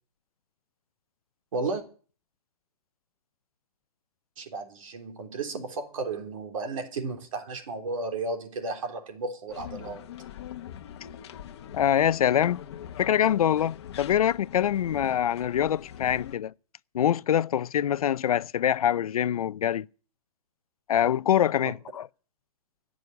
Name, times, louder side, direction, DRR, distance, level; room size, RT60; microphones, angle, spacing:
voice 1, 1.5-1.8 4.4-10.1 21.6-21.7, right 3 dB, 60° right, 3.4 m, -33 dB
sound 1, 9.5-16.4, left 10 dB, 45° left, 1.2 m, -42 dB
voice 2, 11.7-12.6 13.0-16.5 16.9-19.9 20.9-22.1, left 10 dB, 75° left, 0.6 m, -24 dB
17.0 x 6.3 x 9.5 m
hypercardioid pair, 170°, 19 cm